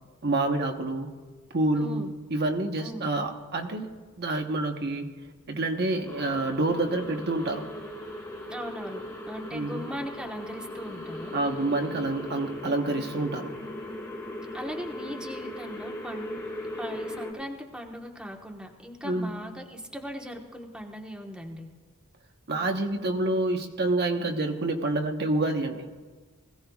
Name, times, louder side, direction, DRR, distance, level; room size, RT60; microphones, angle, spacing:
voice 1, 0.2-1.1 1.5-2.0 2.3-3.9 4.2-5.1 5.5-7.7 9.5-9.8 11.3-13.5 19.0-19.3 22.5-25.9, right 2 dB, 50° right, 3 dB, 1.0 m, -27 dB
voice 2, 1.7-2.1 2.8-3.1 8.5-11.3 14.5-16.4 16.8-21.7, equal, 5° right, 0 dB, 1.2 m, -39 dB
sound 1, 6.1-17.3, left 1 dB, 15° left, 2.0 m, -38 dB
20.5 x 16.5 x 2.4 m, 1.4 s
head